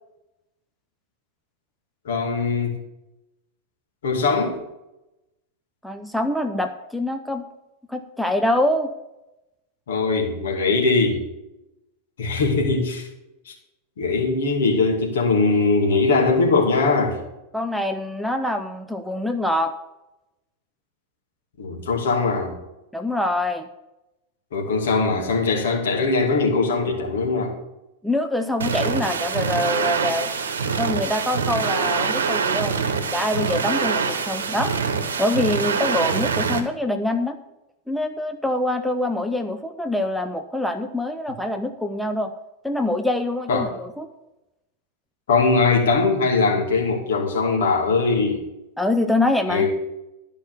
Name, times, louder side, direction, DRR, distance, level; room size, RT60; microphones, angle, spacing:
voice 1, 2.0-2.7 4.0-4.6 9.9-11.2 12.2-13.1 13.5-13.6 14.0-17.2 21.6-22.6 24.5-27.5 43.5-43.7 45.3-48.4 49.5-49.7, left 3 dB, 60° left, 0 dB, 2.5 m, -21 dB
voice 2, 5.8-7.4 7.9-8.9 17.5-19.7 22.9-23.7 28.0-30.3 30.8-34.7 35.2-37.4 37.9-42.3 42.6-44.1 48.8-49.7, left 1 dB, ahead, 6 dB, 0.6 m, -25 dB
sound 1, 28.6-36.6, right 5 dB, 65° right, 1.1 m, -24 dB
12.0 x 5.3 x 7.0 m, 0.95 s
figure-of-eight pair, 90°, 0 cm